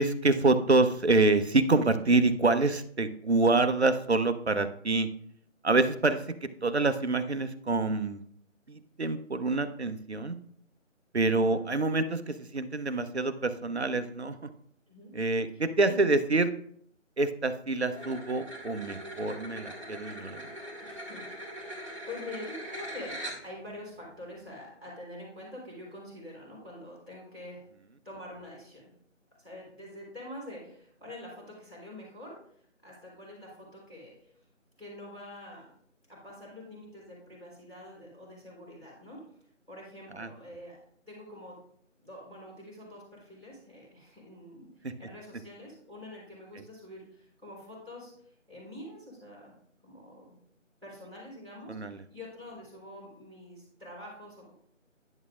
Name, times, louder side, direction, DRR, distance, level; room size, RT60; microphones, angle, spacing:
voice 1, 0.0-5.1 5.6-6.2 6.6-8.2 8.7-10.4 11.1-14.5 15.1-16.5 17.2-20.4 40.2-40.3 44.8-44.9 51.7-52.0, right 3 dB, 55° right, 10 dB, 0.7 m, -26 dB
voice 2, 15.5-16.0 20.8-27.6 28.0-28.9 29.4-32.4 32.8-34.1 34.8-35.7 36.1-39.2 39.7-40.8 41.1-41.6 42.0-48.1 48.5-49.5 49.8-50.3 50.8-54.5, left 1 dB, ahead, -25 dB, 2.0 m, -46 dB
sound 1, 17.9-23.7, right 1 dB, 25° right, 1.9 m, -41 dB
11.0 x 7.3 x 2.5 m, 0.64 s
figure-of-eight pair, 170°, 38 cm